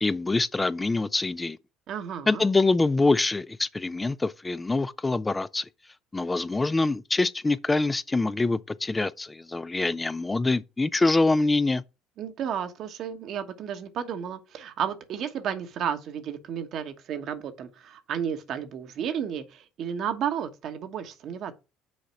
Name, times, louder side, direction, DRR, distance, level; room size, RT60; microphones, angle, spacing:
voice 1, 0.0-1.6 2.3-5.6 6.1-11.8, left 3 dB, 20° left, 0.4 m, -25 dB
voice 2, 1.9-2.4 12.2-21.5, right 8 dB, 60° right, 1.1 m, -32 dB
6.4 x 4.0 x 5.7 m
hypercardioid pair, 65°, 0 cm